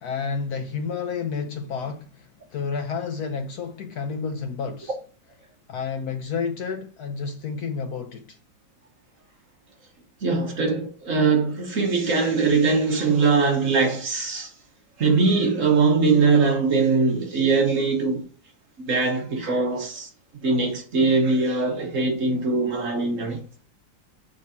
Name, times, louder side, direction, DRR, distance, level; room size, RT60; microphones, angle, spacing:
voice 1, 0.0-4.9 5.7-8.4, left 5 dB, 65° left, 1.0 m, -30 dB
voice 2, 10.2-14.5 15.0-18.2 18.8-20.1 20.4-23.4, right 4 dB, 50° right, 1.4 m, -21 dB
6.5 x 5.3 x 2.7 m
omnidirectional pair, 2.0 m